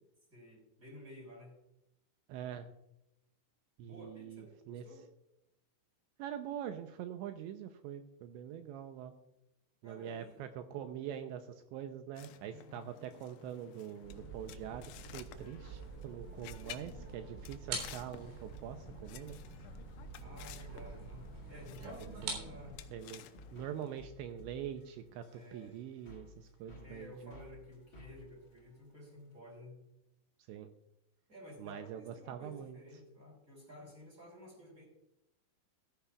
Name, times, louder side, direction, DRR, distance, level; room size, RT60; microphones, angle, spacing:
voice 1, 0.3-1.5 3.8-5.0 9.8-10.4 12.5-12.9 20.2-22.8 25.3-25.8 26.8-29.9 31.3-34.9, left 1 dB, 15° right, -1 dB, 5.2 m, -53 dB
voice 2, 2.3-2.7 3.8-4.9 6.2-9.1 9.8-19.4 21.8-21.9 22.2-22.5 22.9-23.2 23.5-27.4 30.5-30.7 31.6-32.8, right 9 dB, 90° right, 7 dB, 2.6 m, -44 dB
sound 1, 12.2-23.9, left 12 dB, 85° left, 2.8 m, -54 dB
sound 2, 14.0-22.7, right 3 dB, 70° right, 6.0 m, -46 dB
sound 3, 22.7-29.4, left 2 dB, 35° left, 1.3 m, -57 dB
14.5 x 14.0 x 2.4 m, 0.85 s
omnidirectional pair, 5.8 m